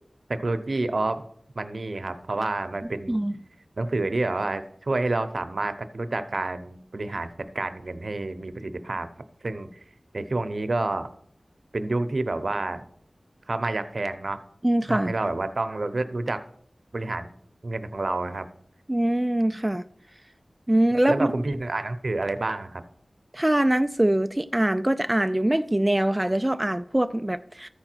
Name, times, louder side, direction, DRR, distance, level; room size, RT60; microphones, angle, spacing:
voice 1, 0.3-1.2 1.6-3.2 3.8-9.1 9.4-9.7 10.1-11.1 11.7-12.8 13.5-14.4 14.9-16.4 16.9-17.3 17.6-18.5 21.1-22.8, right 2 dB, 65° right, 0.7 m, -28 dB
voice 2, 14.6-15.1 18.9-19.8 20.7-21.3 23.3-27.7, right 1 dB, 20° right, 0.3 m, -23 dB
13.5 x 4.9 x 4.5 m
wide cardioid pair, 60°, 0 cm